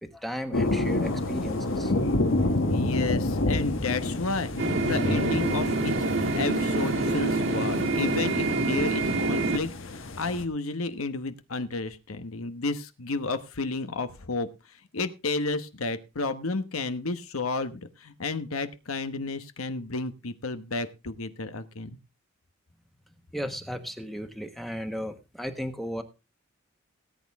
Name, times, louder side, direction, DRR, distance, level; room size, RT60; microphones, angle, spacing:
voice 1, 0.0-1.9 23.3-26.0, equal, ahead, 7 dB, 1.1 m, -35 dB
sound 1, 0.5-10.4, left 2 dB, 65° left, 1.4 m, -29 dB
voice 2, 2.7-5.9 6.3-22.0, left 3 dB, 85° left, 10 dB, 1.1 m, -32 dB
sound 2, 4.6-9.6, right 2 dB, 65° right, 1.6 m, -26 dB
18.0 x 8.6 x 3.5 m, 0.28 s
head